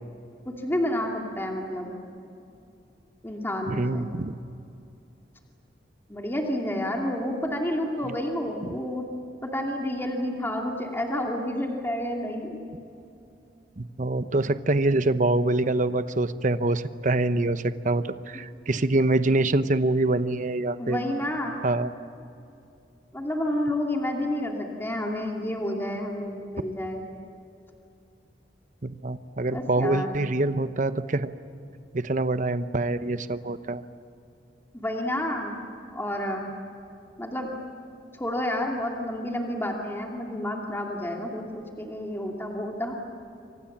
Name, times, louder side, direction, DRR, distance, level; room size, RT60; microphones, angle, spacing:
voice 1, 0.5-1.9 3.2-4.1 6.1-9.1 9.4-12.6 20.8-21.6 23.1-27.0 29.4-30.1 34.7-35.6 35.9-36.5 37.2-37.5 38.1-43.0, left 1 dB, 15° left, 0 dB, 2.5 m, -30 dB
voice 2, 3.7-4.3 8.0-8.2 13.8-21.0 21.6-21.9 28.8-31.3 31.9-33.8, right 2 dB, 45° right, 11 dB, 0.9 m, -25 dB
29.0 x 25.0 x 7.4 m, 2.7 s
head